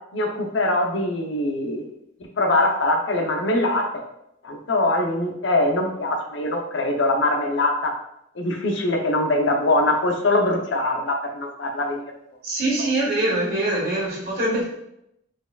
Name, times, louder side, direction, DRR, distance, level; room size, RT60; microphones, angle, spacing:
voice 1, 0.1-1.8 2.4-4.0 4.4-7.9 8.4-12.0 12.8-12.9, left 2 dB, 75° left, 2 dB, 0.7 m, -22 dB
voice 2, 12.4-14.6, right 1 dB, 55° right, -4 dB, 1.6 m, -23 dB
4.8 x 4.4 x 2.3 m, 0.80 s
head